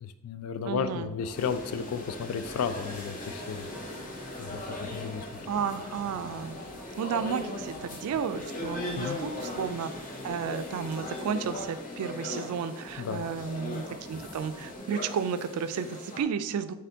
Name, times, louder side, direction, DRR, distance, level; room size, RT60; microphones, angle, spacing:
voice 1, 0.0-3.7 4.4-5.5 9.0-9.2 13.0-13.3, left 6 dB, 75° left, 11 dB, 0.3 m, -33 dB
sound 1, 0.6-14.8, equal, 10° right, 0.8 m, -47 dB
voice 2, 0.6-1.1 5.5-6.6 7.0-9.9 10.2-16.7, right 7 dB, 90° right, 11 dB, 0.3 m, -32 dB
sound 2, 1.3-16.2, left 2 dB, 40° left, 0.6 m, -39 dB
4.2 x 3.7 x 2.7 m, 0.93 s
head